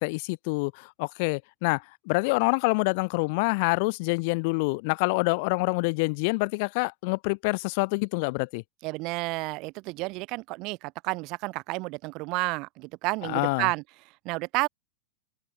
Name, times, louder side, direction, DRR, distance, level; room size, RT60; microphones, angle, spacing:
voice 1, 0.0-8.6 13.2-13.7, left 30 dB, 50° left, 1.4 m, -26 dB
voice 2, 8.8-13.8 14.2-14.7, right 24 dB, 40° right, 2.0 m, -31 dB
supercardioid pair, 150°, 0 cm